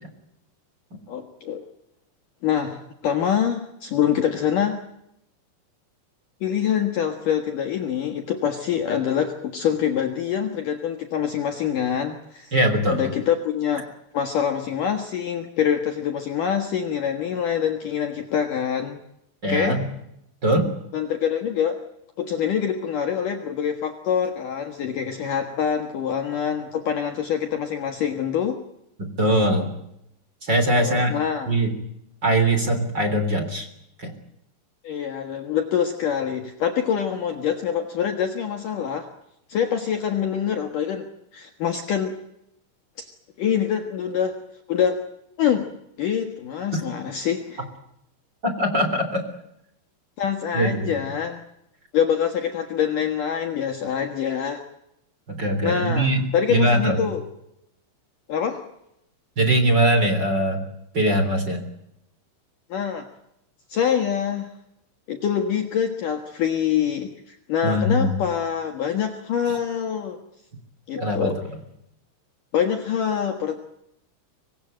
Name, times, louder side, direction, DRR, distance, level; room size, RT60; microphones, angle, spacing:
voice 1, 1.1-1.6 2.4-4.8 6.4-12.5 12.9-13.8 14.1-19.0 19.5-19.8 20.9-21.8 22.2-28.6 30.7-31.5 34.8-39.1 39.5-42.1 43.0-43.1 43.4-44.4 44.7-45.0 45.4-45.7 46.0-47.6 50.2-51.4 51.9-54.6 55.6-57.2 58.3-58.6 62.7-63.1 63.7-64.5 65.1-70.2 70.9-71.4 72.5-73.6, left 8 dB, 60° left, 5 dB, 2.6 m, -25 dB
voice 2, 12.5-13.1 19.4-19.8 20.4-20.7 29.2-29.7 30.4-31.1 31.5-31.7 32.2-33.7 34.0-34.1 48.4-49.2 50.5-50.9 55.3-56.2 56.5-57.0 59.4-60.6 60.9-61.6 67.6-68.2 69.5-69.6 71.0-71.3, right 1 dB, 25° right, 7 dB, 3.5 m, -21 dB
25.5 x 19.5 x 9.0 m, 0.80 s
omnidirectional pair, 5.3 m